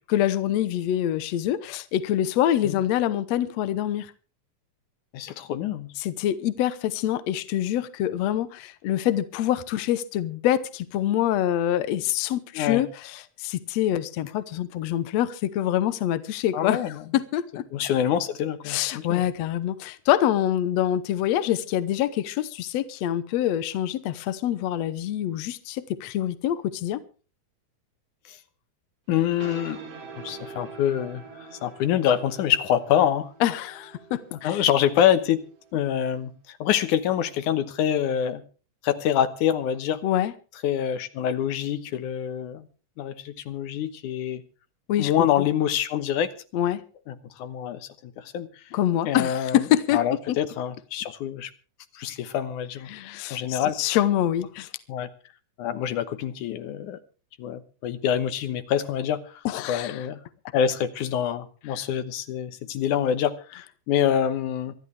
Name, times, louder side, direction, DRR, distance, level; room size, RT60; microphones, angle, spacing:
voice 1, 0.1-4.1 6.0-16.8 17.1-17.6 18.7-27.0 33.4-34.6 40.0-40.3 44.9-45.3 46.5-46.8 48.7-50.0 50.3-50.4 52.9-54.7 59.5-60.1, left 12 dB, 65° left, 2.0 m, -25 dB
voice 2, 5.1-5.9 12.5-12.8 16.5-17.0 17.7-19.2 28.3-28.4 29.1-29.8 30.2-33.3 34.3-35.5 35.7-38.4 38.8-40.0 40.6-42.6 43.0-44.4 45.0-46.3 47.1-48.5 49.1-49.6 49.9-51.5 51.9-52.9 53.3-53.8 54.9-55.1 55.6-57.0 57.4-59.4 59.7-60.2 60.5-64.7, left 10 dB, 85° left, 2.6 m, -26 dB
sound 1, 29.1-36.3, right 4 dB, 55° right, 3.2 m, -45 dB
25.5 x 11.0 x 3.4 m
omnidirectional pair, 3.5 m